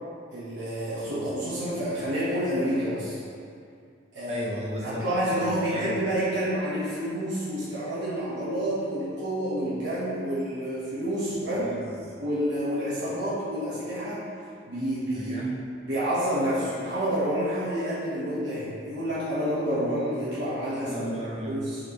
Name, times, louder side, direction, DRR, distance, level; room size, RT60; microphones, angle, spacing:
voice 1, 0.3-3.2 4.1-4.4 4.8-11.7 12.2-14.2 14.7-15.4 15.8-21.0 21.4-21.8, equal, 65° right, -10 dB, 1.4 m, -29 dB
voice 2, 4.3-5.0 5.3-6.0 11.3-12.2 13.1-13.2 15.1-15.5 20.8-21.7, equal, 35° right, -4 dB, 1.0 m, -36 dB
7.9 x 4.5 x 3.1 m, 2.3 s
head